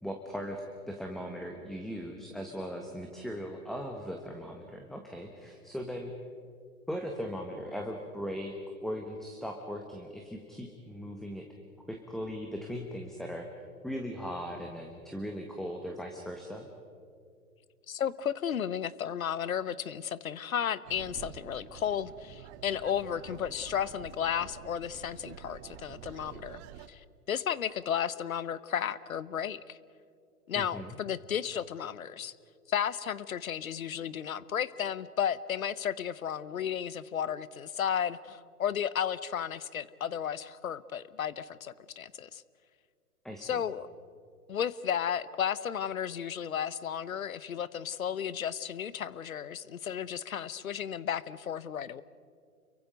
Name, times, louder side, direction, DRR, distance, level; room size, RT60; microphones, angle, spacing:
voice 1, 0.0-6.1 6.9-11.4 11.9-16.6 30.5-31.0 43.2-43.6, equal, ahead, 2 dB, 1.4 m, -39 dB
voice 2, 17.9-26.6 26.9-29.8 30.5-32.3 32.7-42.4 43.4-43.9 44.5-52.0, left 8 dB, 65° left, 18 dB, 1.0 m, -33 dB
sound 1, 20.8-26.9, right 11 dB, 20° right, 0.7 m, -48 dB
29.5 x 23.5 x 5.2 m, 2.3 s
figure-of-eight pair, 110°, 45 cm